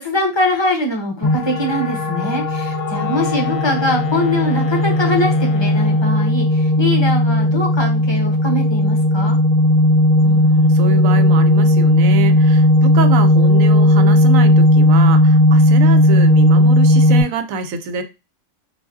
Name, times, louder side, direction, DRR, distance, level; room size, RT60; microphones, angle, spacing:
voice 1, 0.0-9.4, left 1 dB, 25° left, 1 dB, 0.8 m, -22 dB
sound 1, 1.2-17.2, left 1 dB, 50° left, 0.5 m, -14 dB
Wind instrument woodwind instrument, 2.7-6.4, left 11 dB, 75° left, 0.9 m, -31 dB
voice 2, 10.2-18.0, right 4 dB, 85° right, 9 dB, 1.0 m, -25 dB
4.6 x 2.6 x 2.6 m, 0.27 s
omnidirectional pair, 1.4 m